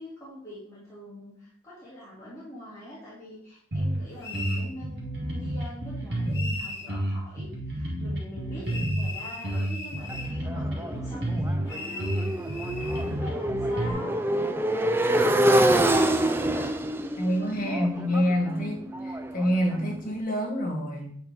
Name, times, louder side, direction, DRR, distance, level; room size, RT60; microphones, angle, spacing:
voice 1, 0.0-12.1 12.6-16.2 16.5-16.7 17.4-18.3 18.6-18.8, left 1 dB, 20° left, -8 dB, 2.1 m, -44 dB
sound 1, 3.7-4.0 4.3-6.5 6.9-9.1 9.4-11.6 12.0-13.9, right 1 dB, 65° right, 1.9 m, -30 dB
sound 2, 4.2-4.7 6.3-6.9 8.7-10.4 11.7-13.1, left 2 dB, 70° left, 1.9 m, -38 dB
Motorcycle, 10.1-19.9, right 1 dB, 10° right, 0.4 m, -26 dB
voice 2, 17.2-21.1, equal, 50° left, -2 dB, 1.8 m, -27 dB
8.0 x 4.4 x 3.4 m, 0.62 s
head